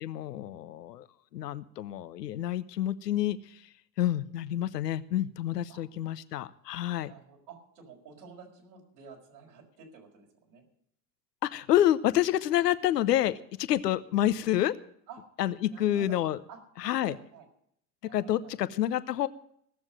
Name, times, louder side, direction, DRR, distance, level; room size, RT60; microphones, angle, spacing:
voice 1, 0.0-1.0 1.3-3.6 4.0-7.1 11.4-14.7 15.4-16.4 16.8-17.2 18.1-19.3, left 12 dB, 85° left, 15 dB, 0.8 m, -28 dB
voice 2, 7.1-10.6 15.1-15.3 15.7-16.2 16.5-17.5 18.1-18.6, right 5 dB, 70° right, 0 dB, 5.7 m, -51 dB
16.5 x 7.2 x 7.7 m, 0.68 s
hypercardioid pair, 80°, 47 cm